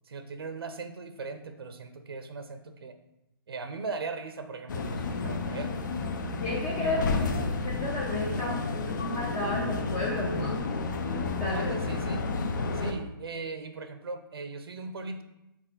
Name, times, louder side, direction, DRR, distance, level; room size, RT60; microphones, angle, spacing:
voice 1, 0.1-2.9 3.5-5.9 6.8-7.5 8.4-8.6 11.5-12.2 12.7-15.2, right 4 dB, 85° right, 8 dB, 0.8 m, -39 dB
sound 1, 4.7-12.9, left 3 dB, 55° left, 0.7 m, -31 dB
voice 2, 6.4-7.0 7.6-8.5 8.9-10.6 11.4-11.7, left 2 dB, 15° left, -3 dB, 0.5 m, -32 dB
6.4 x 4.1 x 4.0 m, 0.90 s
hypercardioid pair, 165°, 12 cm